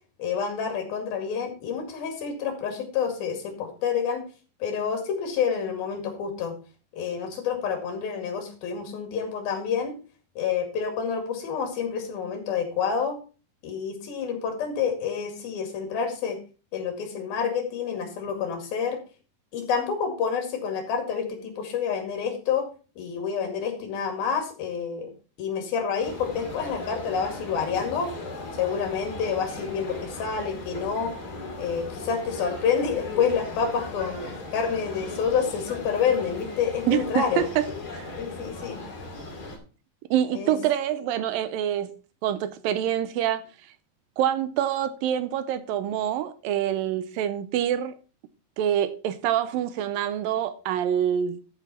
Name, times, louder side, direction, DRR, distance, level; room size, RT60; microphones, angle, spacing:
voice 1, 0.2-4.3 4.6-6.5 6.9-10.0 10.4-13.2 13.6-16.4 16.7-19.0 19.5-22.7 23.0-25.1 25.4-28.1 28.6-31.1 31.6-34.2 34.5-37.5 38.2-38.8 40.3-40.6, left 6 dB, 70° left, 3.9 m, -28 dB
sound 1, 26.0-39.6, left 3 dB, 30° left, 2.1 m, -38 dB
voice 2, 36.9-37.7 37.9-38.1 40.1-41.9 42.2-43.4 44.2-47.9 48.6-51.4, right 10 dB, 80° right, 2.2 m, -26 dB
12.5 x 6.1 x 4.2 m
omnidirectional pair, 4.4 m